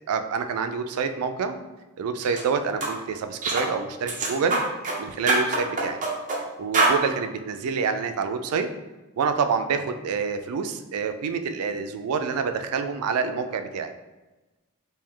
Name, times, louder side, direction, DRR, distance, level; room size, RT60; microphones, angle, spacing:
voice 1, 0.1-1.6 2.0-4.6 5.0-6.0 6.6-8.7 9.2-13.9, right 5 dB, 80° right, 8 dB, 0.3 m, -27 dB
sound 1, 2.2-2.4 2.8-2.9 3.4-3.7 4.1-5.0 5.3-6.4 6.7-7.0, right 2 dB, 35° right, 0.6 m, -24 dB
3.3 x 2.7 x 3.6 m, 1.1 s
head